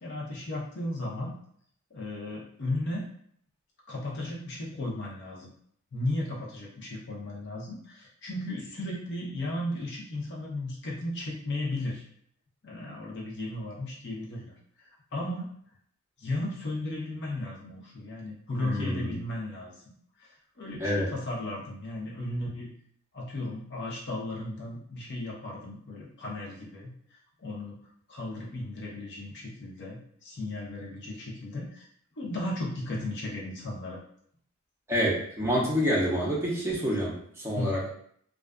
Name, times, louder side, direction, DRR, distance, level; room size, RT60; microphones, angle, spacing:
voice 1, 0.0-1.4 1.9-3.1 3.9-5.5 5.9-12.0 12.6-15.5 16.2-19.7 20.2-22.7 23.1-26.9 27.4-27.8 28.1-31.9 32.2-34.0 37.5-37.8, left 1 dB, 55° left, -3 dB, 0.7 m, -35 dB
voice 2, 18.6-19.1 20.8-21.1 34.9-37.9, equal, 10° right, -5 dB, 0.6 m, -27 dB
2.4 x 2.3 x 2.2 m, 0.63 s
head